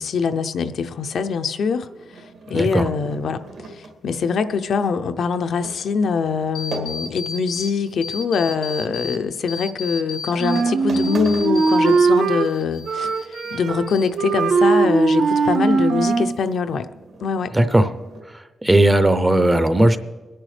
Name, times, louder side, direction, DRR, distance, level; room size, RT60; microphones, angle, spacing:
voice 1, 0.0-16.9 17.2-17.5, left 5 dB, 65° left, 9 dB, 0.5 m, -23 dB
sound 1, 1.5-7.6 7.9-9.4 10.0-10.2 10.6-10.7 10.9-12.6 12.9-14.1 14.4-15.0 15.3-15.4 15.8-18.2, right 2 dB, 75° right, 2.0 m, -40 dB
voice 2, 2.5-2.9 17.5-17.9 18.6-20.0, right 1 dB, 10° right, 11 dB, 0.5 m, -16 dB
sound 2, 6.5-7.7 8.0-9.2 9.5-12.1 12.4-13.6 13.9-14.5, left 5 dB, 85° left, 1.5 m, -33 dB
Wind instrument woodwind instrument, 10.4-12.5 12.9-13.9 14.2-16.4, right 4 dB, 60° right, 0.6 m, -19 dB
23.0 x 10.0 x 3.3 m, 1.3 s
wide cardioid pair, 180°, 0 cm